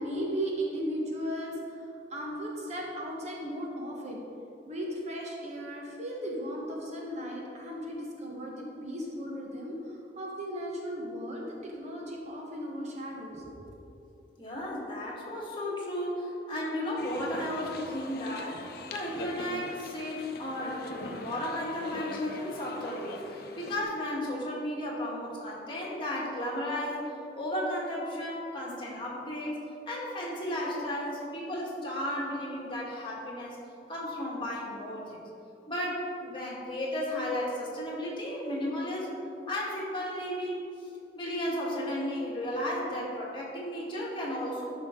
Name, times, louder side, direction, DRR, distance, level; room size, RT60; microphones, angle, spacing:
voice 1, 0.0-4.2 4.7-13.7, equal, 40° right, -2 dB, 1.3 m, -36 dB
voice 2, 14.4-33.6 33.9-35.2 35.7-40.9 41.2-44.7, left 1 dB, 30° left, -4 dB, 2.1 m, -34 dB
sound 1, 17.0-23.8, left 2 dB, 60° left, 0.8 m, -42 dB
12.5 x 5.7 x 3.9 m, 2.7 s
head